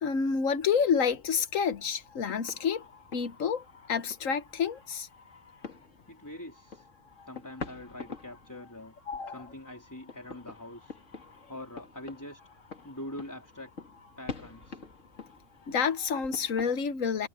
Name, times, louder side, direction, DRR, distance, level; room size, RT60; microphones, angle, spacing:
voice 1, 0.0-2.8 3.1-5.1 9.1-9.4 15.7-17.3, left 6 dB, 85° left, 1.5 m, -29 dB
sound 1, 1.0-16.7, left 4 dB, 70° left, 2.6 m, -47 dB
voice 2, 6.1-6.9 7.3-8.9 9.3-11.0 11.5-12.4 12.8-13.7 14.2-14.8, left 1 dB, 15° left, 4.0 m, -44 dB
omnidirectional pair, 1.3 m